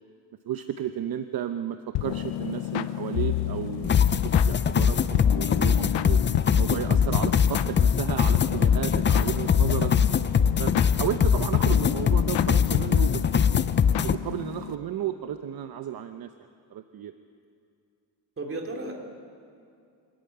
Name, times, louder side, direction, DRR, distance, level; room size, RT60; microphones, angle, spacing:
voice 1, 0.5-6.2 6.5-9.9 10.6-13.5 14.0-16.3 16.7-17.1, right 10 dB, 55° right, 8 dB, 0.9 m, -33 dB
sound 1, 2.0-14.8, left 12 dB, 75° left, 0.8 m, -30 dB
sound 2, 3.8-14.1, left 7 dB, 25° left, 0.5 m, -22 dB
voice 2, 18.4-18.9, right 2 dB, 30° right, 1 dB, 3.3 m, -35 dB
24.5 x 14.5 x 9.2 m, 2.4 s
cardioid pair, 125°, 43 cm